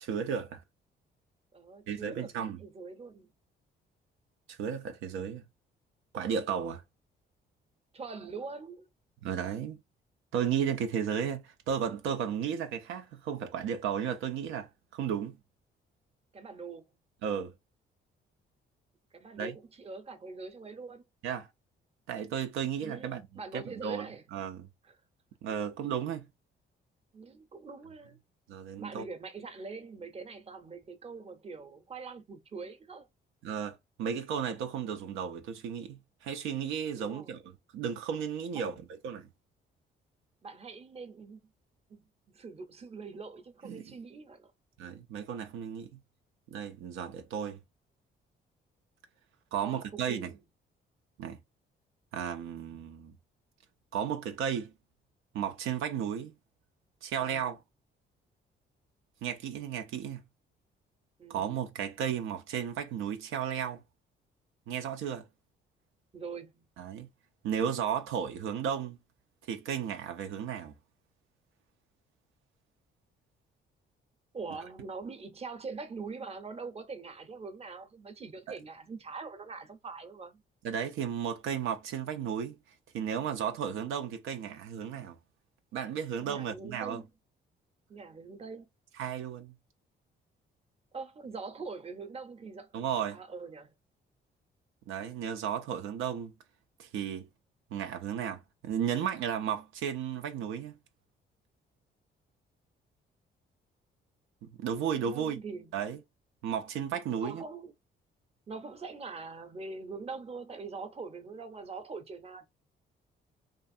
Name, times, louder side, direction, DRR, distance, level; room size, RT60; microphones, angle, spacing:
voice 1, 0.0-0.6 1.9-2.6 4.5-5.4 6.1-6.8 9.2-9.8 10.3-15.4 17.2-17.5 19.4-19.6 21.2-21.5 22.1-23.3 23.5-24.7 25.4-26.3 28.5-29.1 33.4-39.3 43.6-43.9 44.8-45.9 46.5-47.6 49.5-50.3 51.2-51.4 52.1-53.2 53.9-54.7 55.3-56.3 57.0-57.6 59.2-60.2 61.3-63.8 64.7-65.3 66.8-67.1 67.4-69.0 69.5-70.7 78.5-78.6 80.6-82.6 82.9-85.2 85.7-87.0 89.0-89.5 92.7-93.2 94.9-96.3 96.8-97.3 97.7-100.8 104.4-105.4 105.7-106.0 106.4-107.4, right 8 dB, 85° right, 0.5 m, -34 dB
voice 2, 1.5-3.3 7.9-8.9 16.3-16.9 19.2-21.0 22.8-24.2 24.8-24.9 27.1-28.2 28.8-33.1 37.0-37.4 38.5-38.8 40.4-41.4 41.9-44.5 49.6-50.3 61.2-61.4 66.1-66.7 74.3-80.4 86.2-87.1 87.9-88.7 90.9-92.7 93.1-93.7 104.9-105.7 107.1-107.7 108.5-112.5, right 4 dB, 30° right, 0.7 m, -43 dB
2.5 x 2.4 x 2.6 m
cardioid pair, 90°, 20 cm